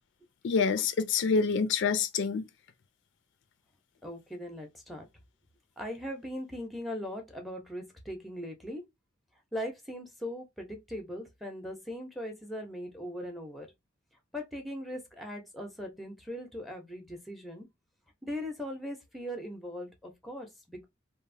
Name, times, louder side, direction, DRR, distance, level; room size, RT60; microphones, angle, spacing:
voice 1, 0.4-2.5, left 5 dB, 70° left, 0.4 m, -27 dB
voice 2, 4.0-5.1 5.8-8.8 9.5-13.7 14.3-17.7 18.2-20.9, equal, ahead, 0.6 m, -39 dB
2.9 x 2.0 x 2.5 m
head